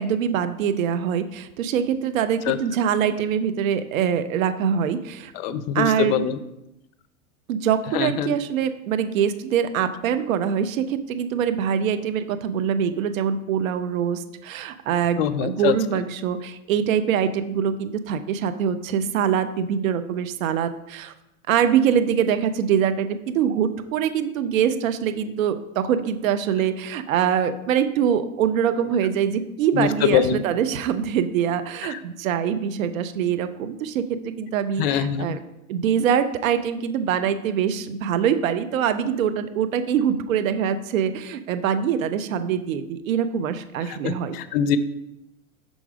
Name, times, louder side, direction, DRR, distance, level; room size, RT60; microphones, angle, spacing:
voice 1, 0.0-6.2 7.5-21.1 21.5-35.4 35.7-44.4, right 8 dB, 65° right, 11 dB, 0.6 m, -24 dB
voice 2, 5.3-6.4 7.9-8.4 15.2-15.8 29.7-30.4 31.9-32.0 34.8-35.4 43.9-44.8, left 9 dB, 45° left, 13 dB, 0.5 m, -23 dB
5.9 x 3.9 x 4.8 m, 0.88 s
hypercardioid pair, 95°, 43 cm